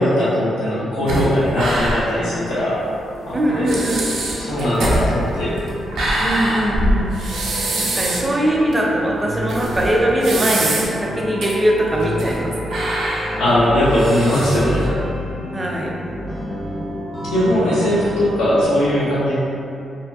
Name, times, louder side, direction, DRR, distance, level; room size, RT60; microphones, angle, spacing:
voice 1, 0.0-2.8 3.3-3.7 4.4-5.6 13.4-15.0 17.3-19.3, equal, 85° left, -10 dB, 0.6 m, -19 dB
sound 1, 1.1-2.2 2.5-2.6 3.3-3.4 3.7-8.3 8.7-8.8 9.5-11.0 11.4-11.5 12.0-12.4 12.7-14.8, right 1 dB, 80° right, 0.5 m, -23 dB
sound 2, 2.5-18.7, equal, 35° left, 0.7 m, -30 dB
voice 2, 3.3-4.0 6.2-7.1 7.8-12.8 15.5-15.9, right 1 dB, 20° right, -2 dB, 0.5 m, -21 dB
2.6 x 2.2 x 2.3 m, 2.6 s
cardioid pair, 65°, 0 cm